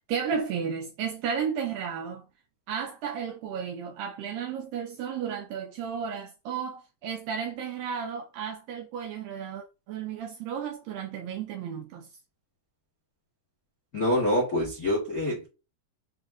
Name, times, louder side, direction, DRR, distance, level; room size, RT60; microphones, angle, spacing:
voice 1, 0.1-2.3 2.7-12.1, right 7 dB, 80° right, 2.0 m, -33 dB
voice 2, 13.9-15.5, left 1 dB, 60° left, 0.9 m, -26 dB
7.5 x 2.8 x 2.4 m
omnidirectional pair, 4.6 m